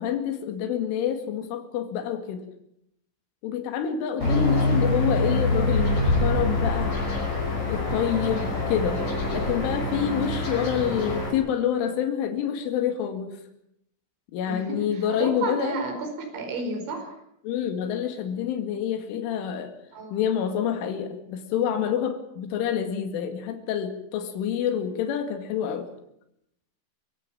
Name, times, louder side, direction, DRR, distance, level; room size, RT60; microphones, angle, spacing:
voice 1, 0.0-2.4 3.4-6.9 7.7-9.0 9.3-13.4 14.3-15.8 17.4-19.7 20.1-25.9, left 9 dB, 75° left, 6 dB, 4.6 m, -27 dB
sound 1, 4.2-11.3, left 2 dB, 40° left, 6.9 m, -25 dB
voice 2, 4.2-4.9 14.5-17.1 19.9-20.2, right 3 dB, 65° right, 2 dB, 7.1 m, -33 dB
25.0 x 15.5 x 8.8 m, 0.77 s
omnidirectional pair, 5.7 m